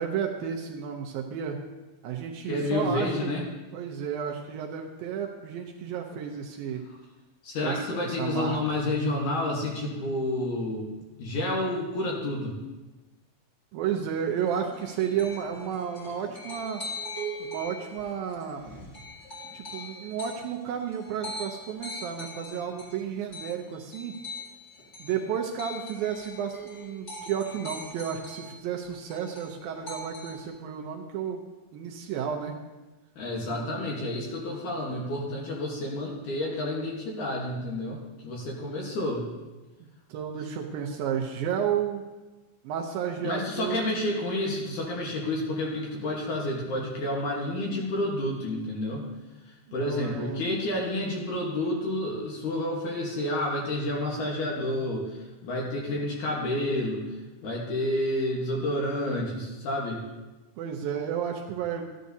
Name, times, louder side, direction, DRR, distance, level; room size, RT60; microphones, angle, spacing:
voice 1, 0.0-1.6 2.0-3.4 3.7-6.8 7.6-8.8 13.7-16.8 17.4-18.6 19.5-24.2 25.0-31.4 31.7-32.6 33.4-33.8 40.1-42.0 42.6-43.9 49.7-50.5 60.6-61.9, right 8 dB, 75° right, 1 dB, 2.3 m, -32 dB
voice 2, 2.5-3.4 7.4-10.9 11.2-12.6 33.2-39.3 43.2-49.0 49.5-60.1, left 1 dB, 60° left, -2 dB, 2.3 m, -30 dB
sound 1, 14.1-28.6 28.8-30.5, equal, 25° left, 1.6 m, -41 dB
13.5 x 10.5 x 2.7 m, 1.2 s
omnidirectional pair, 4.5 m